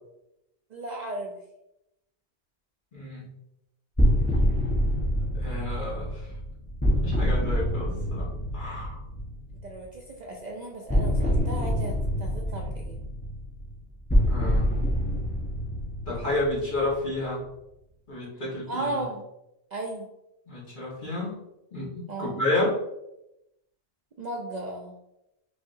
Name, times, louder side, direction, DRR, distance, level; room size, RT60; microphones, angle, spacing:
voice 1, 0.7-1.4 9.6-13.0 18.7-19.2 19.7-20.1 22.1-22.4 24.2-25.0, right 2 dB, 55° right, -1 dB, 0.5 m, -35 dB
voice 2, 2.9-3.3 5.3-6.2 7.0-8.3 8.5-9.0 14.3-14.7 16.1-17.4 18.1-19.0 20.5-21.4 21.7-22.8, left 2 dB, 50° left, -6 dB, 1.5 m, -30 dB
sound 1, 4.0-9.7 10.9-17.2, equal, 10° left, 0.8 m, -26 dB
5.5 x 2.7 x 2.6 m, 0.87 s
omnidirectional pair, 1.1 m